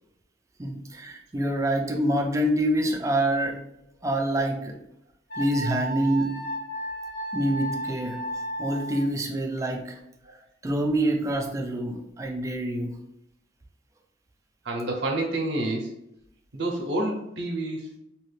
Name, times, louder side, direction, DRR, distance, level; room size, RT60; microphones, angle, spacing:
voice 1, 0.6-3.6 4.0-4.8 5.4-6.3 7.3-10.0 10.6-13.0, right 1 dB, 15° right, 2 dB, 0.4 m, -26 dB
Wind instrument woodwind instrument, 5.3-9.1, right 1 dB, 50° left, 0.7 m, -34 dB
voice 2, 14.6-15.9 16.5-17.9, right 1 dB, 65° right, 0 dB, 0.6 m, -28 dB
2.9 x 2.4 x 3.2 m, 0.80 s
head